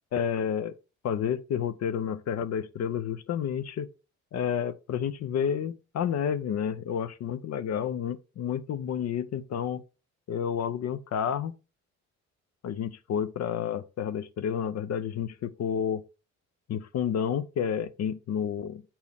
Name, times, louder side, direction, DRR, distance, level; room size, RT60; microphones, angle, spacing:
voice 1, 0.1-0.7 1.0-3.9 4.3-9.8 10.3-11.5 12.6-16.0 16.7-18.8, left 8 dB, 60° left, 0.6 m, -30 dB
7.2 x 4.3 x 3.4 m
cardioid pair, 90°, 30 cm